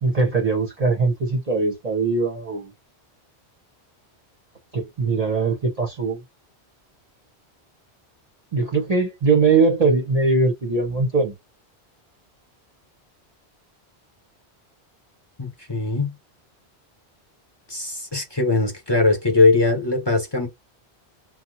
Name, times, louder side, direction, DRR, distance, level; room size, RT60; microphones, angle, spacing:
voice 1, 0.0-2.7 4.7-6.2 8.5-11.4, right 4 dB, 40° right, 0.8 m, -21 dB
voice 2, 15.4-16.1 17.7-20.5, left 3 dB, 25° left, 1.0 m, -20 dB
2.8 x 2.1 x 3.8 m
omnidirectional pair, 1.1 m